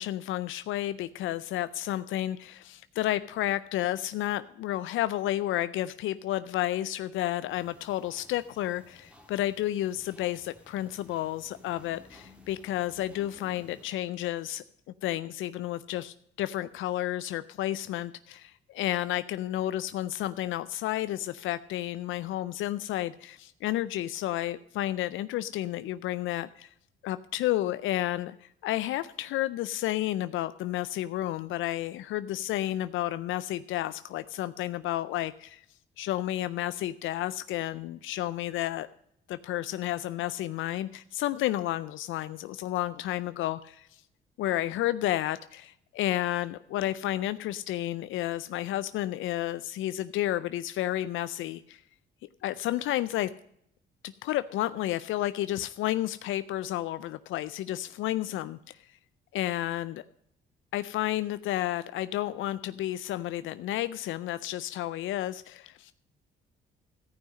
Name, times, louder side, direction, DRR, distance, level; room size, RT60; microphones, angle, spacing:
voice 1, 0.0-14.6 15.0-26.7 27.0-35.6 36.0-38.9 39.3-44.0 44.4-51.8 52.4-53.3 54.0-58.9 59.3-60.0 60.7-65.9, left 14 dB, 80° left, 14 dB, 0.4 m, -31 dB
sound 1, 7.5-13.9, left 1 dB, 5° right, 1.9 m, -56 dB
14.0 x 5.6 x 7.4 m, 0.74 s
cardioid pair, 90°, 20 cm